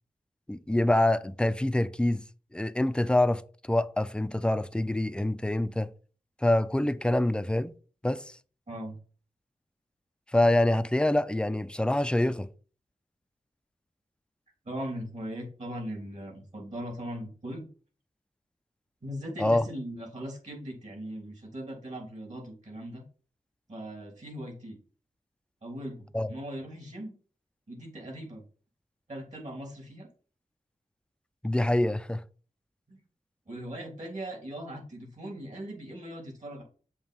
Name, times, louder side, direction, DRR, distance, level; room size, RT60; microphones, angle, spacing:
voice 1, 0.5-2.2 2.5-5.9 6.4-7.7 8.0-8.4 10.3-12.5 19.4-19.7 26.1-26.3 31.4-32.2, left 1 dB, 5° left, 0.4 m, -26 dB
voice 2, 14.6-17.7 19.0-23.0 23.7-24.8 25.6-27.1 27.7-28.4 29.1-30.1 32.9-33.0 33.5-36.6, equal, 55° right, 3.3 m, -39 dB
7.1 x 2.9 x 5.5 m
cardioid pair, 50°, 14 cm